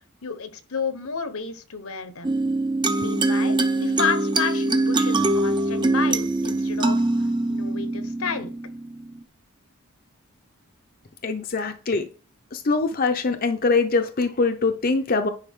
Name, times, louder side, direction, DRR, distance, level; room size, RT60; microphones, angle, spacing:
voice 1, 0.2-2.3 2.9-7.0 7.5-8.5, left 5 dB, 75° left, 1.1 m, -31 dB
sound 1, 2.2-9.2, right 2 dB, 20° right, 0.5 m, -23 dB
voice 2, 11.2-12.0 12.5-15.3, left 3 dB, 40° left, 0.6 m, -23 dB
9.9 x 5.0 x 3.7 m
head